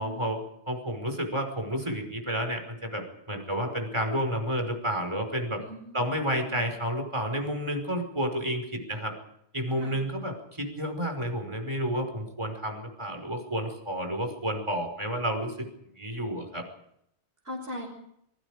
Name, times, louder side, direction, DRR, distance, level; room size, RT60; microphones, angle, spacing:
voice 1, 0.0-5.6 5.9-9.1 9.5-15.7 16.0-16.6, equal, 25° right, 5 dB, 5.5 m, -31 dB
voice 2, 5.6-6.6 9.8-10.0 17.4-17.9, left 1 dB, 65° right, -2 dB, 6.3 m, -40 dB
25.5 x 23.5 x 5.1 m, 0.75 s
omnidirectional pair, 1.1 m